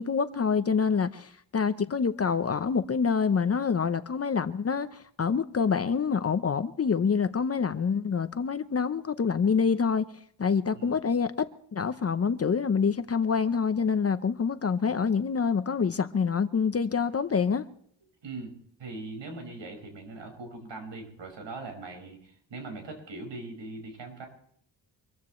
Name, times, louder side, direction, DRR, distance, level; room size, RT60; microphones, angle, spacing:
voice 1, 0.0-4.9 5.2-10.1 10.4-17.6, left 6 dB, 35° left, 0.8 m, -26 dB
voice 2, 18.2-18.5 18.8-24.3, right 3 dB, 70° right, 5.7 m, -41 dB
25.5 x 14.5 x 3.2 m
cardioid pair, 120°, 45 cm